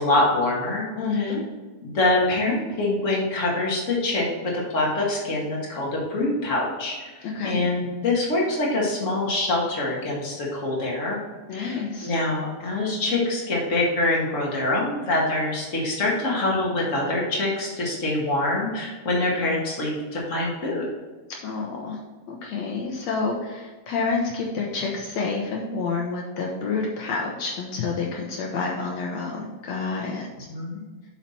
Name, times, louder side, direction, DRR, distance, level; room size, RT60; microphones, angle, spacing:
voice 1, 0.0-0.9 1.1-1.3 1.8-11.2 11.5-20.9 30.5-30.8, left 2 dB, 60° left, -4 dB, 0.8 m, -25 dB
voice 2, 0.9-1.4 7.2-7.6 11.5-12.2 21.4-22.0 22.3-30.5, left 4 dB, 75° left, -1 dB, 1.6 m, -28 dB
7.4 x 5.7 x 4.3 m, 1.3 s
omnidirectional pair, 4.2 m